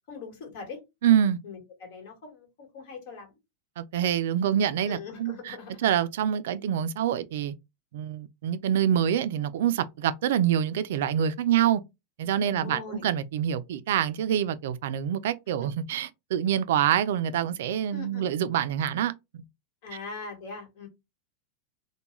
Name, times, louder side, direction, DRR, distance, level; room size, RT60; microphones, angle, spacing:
voice 1, 0.1-0.8 1.4-3.3 4.8-5.8 12.4-13.1 17.9-18.2 19.8-20.9, left 4 dB, 65° left, 1.3 m, -41 dB
voice 2, 1.0-1.4 3.8-7.5 7.9-11.8 12.2-19.4, right 10 dB, 75° right, 0.3 m, -26 dB
2.3 x 2.1 x 3.0 m
hypercardioid pair, 120°, 0 cm